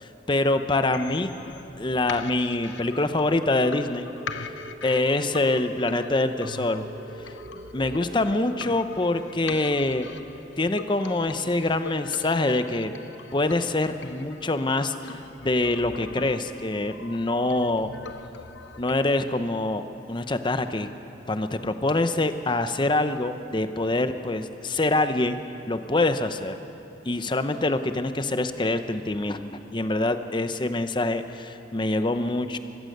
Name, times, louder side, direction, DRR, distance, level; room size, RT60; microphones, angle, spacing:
voice 1, 0.3-1.3 1.8-4.1 4.8-6.8 7.2-7.3 7.7-10.1 10.6-12.9 13.3-17.9 18.8-19.8 20.1-20.9 21.3-25.4 25.7-26.5 27.1-32.6, left 2 dB, 25° left, 9 dB, 0.7 m, -25 dB
sound 1, 0.9-18.9, left 4 dB, 85° left, 0.7 m, -42 dB
sound 2, 4.0-12.4, equal, 35° right, 1.2 m, -45 dB
24.5 x 16.0 x 6.6 m, 3.0 s
head